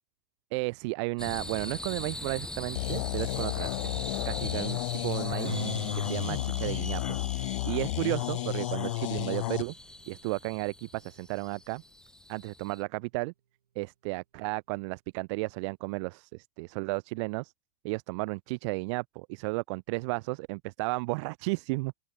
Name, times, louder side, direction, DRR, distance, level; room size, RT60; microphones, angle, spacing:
voice 1, 0.5-5.6 5.9-7.0 7.6-9.7 10.1-11.8 12.3-13.3 13.7-17.5 17.8-21.9, right 27 dB, 50° right, 1.1 m, -33 dB
sound 1, 1.2-12.8, left 1 dB, 5° left, 2.5 m, -42 dB
sound 2, 2.7-9.6, left 19 dB, 55° left, 0.4 m, -32 dB
Strum, 5.4-10.7, right 8 dB, 80° right, 3.2 m, -44 dB
open air
hypercardioid pair, 105°, 19 cm